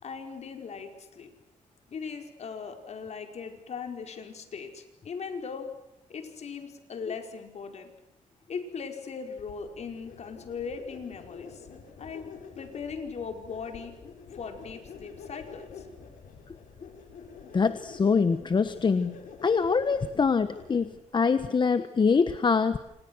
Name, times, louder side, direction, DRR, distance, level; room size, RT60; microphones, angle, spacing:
voice 1, 0.0-1.3 1.9-5.7 6.1-7.9 8.5-11.7 12.0-13.9 14.3-15.9, left 5 dB, 55° left, 5 dB, 4.9 m, -39 dB
sound 1, 9.4-21.0, left 5 dB, 80° left, 7.2 m, -48 dB
voice 2, 17.5-22.8, left 5 dB, 35° left, 11 dB, 1.2 m, -24 dB
30.0 x 27.0 x 6.3 m, 0.89 s
cardioid pair, 120°, 13 cm